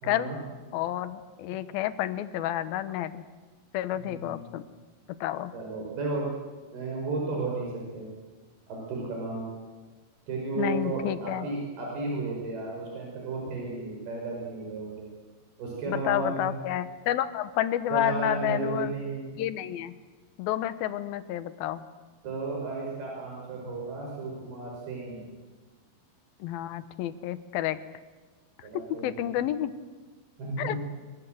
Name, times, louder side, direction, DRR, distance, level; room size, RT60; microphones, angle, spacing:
voice 1, 0.0-0.4 4.0-4.4 5.5-6.3 6.7-8.1 8.7-9.5 10.3-15.1 15.6-16.6 17.9-19.4 22.2-25.3 28.6-29.3 30.4-30.8, right 3 dB, 90° right, -2 dB, 7.2 m, -33 dB
voice 2, 0.7-3.2 3.7-4.7 5.2-5.5 10.6-11.5 15.9-18.9 19.4-19.9 20.4-21.8 26.4-27.8 29.0-29.7 30.6-30.8, left 12 dB, 80° left, 12 dB, 2.8 m, -30 dB
25.0 x 23.5 x 7.8 m, 1.3 s
omnidirectional pair, 4.3 m